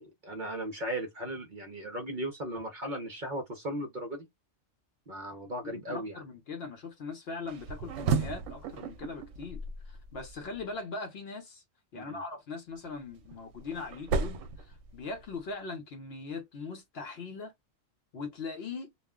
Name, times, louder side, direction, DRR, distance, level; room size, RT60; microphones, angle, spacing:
voice 1, 0.0-4.3 5.1-6.2 11.9-12.2, right 1 dB, 50° right, 0.7 m, -37 dB
voice 2, 5.7-11.6 11.9-17.5 18.1-18.9, left 4 dB, 60° left, 0.8 m, -40 dB
sound 1, 7.5-10.6 12.8-15.4, right 4 dB, 70° right, 0.9 m, -34 dB
2.4 x 2.0 x 3.5 m
omnidirectional pair, 1.4 m